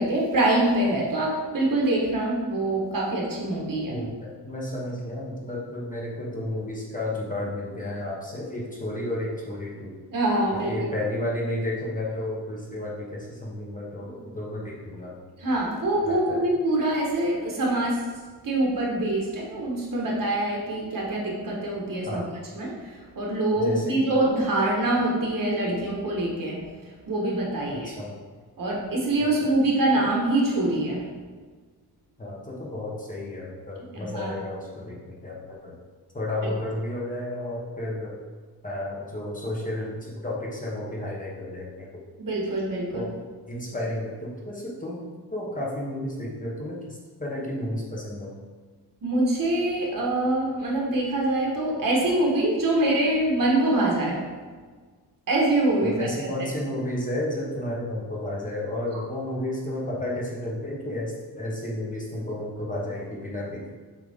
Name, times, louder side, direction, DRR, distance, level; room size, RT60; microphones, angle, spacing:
voice 1, 0.0-4.0 10.1-10.9 15.4-18.1 18.4-22.2 22.5-26.6 27.1-27.9 28.6-31.1 33.9-34.3 42.2-43.1 49.0-54.2 55.3-56.5, right 1 dB, 55° right, -2 dB, 1.4 m, -24 dB
voice 2, 3.9-9.9 10.5-15.2 16.0-16.4 22.1-22.2 23.6-24.1 27.7-28.2 29.2-29.5 32.2-35.7 36.1-38.2 38.6-41.9 42.9-43.2 43.5-48.3 55.8-63.6, left 1 dB, 20° left, -5 dB, 1.0 m, -32 dB
7.3 x 3.7 x 3.6 m, 1.5 s
wide cardioid pair, 170°, 40 cm